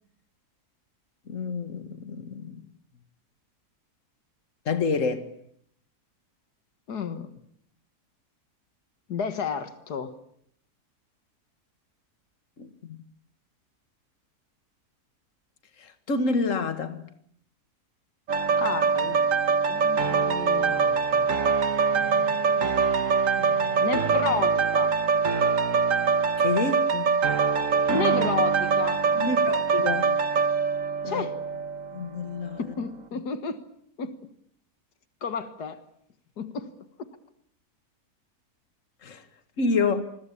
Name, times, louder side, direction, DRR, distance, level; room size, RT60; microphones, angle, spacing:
voice 1, 1.3-2.6 4.7-5.3 12.6-13.0 15.8-17.0 26.4-27.1 29.2-30.2 31.0-31.3 31.9-32.6 39.0-39.2 39.6-40.0, left 4 dB, 55° left, 2.1 m, -28 dB
voice 2, 6.9-7.3 9.1-10.2 18.6-19.2 19.7-21.5 21.9-22.9 23.4-25.0 27.9-29.0 31.1-31.4 32.6-33.6 34.0-34.2 35.2-35.8 36.4-36.7 37.0-37.1, left 6 dB, 90° left, 2.1 m, -32 dB
sound 1, 18.3-32.0 32.5-32.6, right 5 dB, 55° right, 1.7 m, -23 dB
28.0 x 21.0 x 8.5 m
omnidirectional pair, 1.7 m